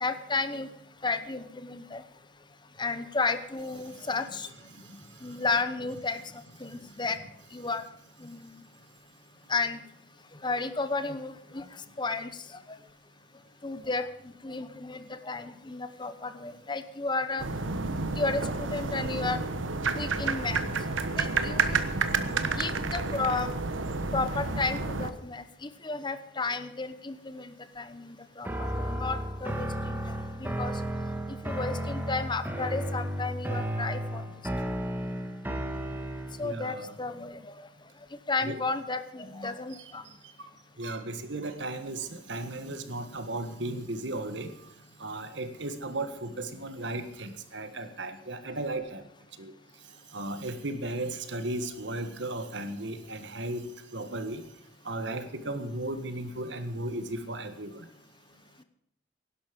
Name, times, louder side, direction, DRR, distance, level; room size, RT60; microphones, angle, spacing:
voice 1, 0.0-0.7 1.0-2.0 2.8-4.5 5.2-6.2 6.6-7.2 7.5-7.8 8.2-8.6 9.5-9.8 10.4-12.6 13.6-14.1 14.4-17.4 18.1-19.4 19.9-20.6 21.2-21.8 22.5-23.5 24.1-30.7 31.4-34.2 34.6-34.7 36.4-37.7 38.3-40.0, left 3 dB, 25° left, 11 dB, 0.9 m, -33 dB
voice 2, 4.7-5.4 6.7-6.9 36.4-36.9 38.4-38.6 39.3-39.8 40.8-44.7 45.0-49.0 49.4-49.5 50.1-53.6 53.9-54.4 54.8-57.9, right 2 dB, 65° right, 10 dB, 1.6 m, -36 dB
sound 1, 17.4-25.1, right 4 dB, 80° right, 1.2 m, -30 dB
sound 2, 28.4-36.5, equal, 10° right, 1.6 m, -33 dB
17.0 x 11.5 x 5.2 m, 0.76 s
head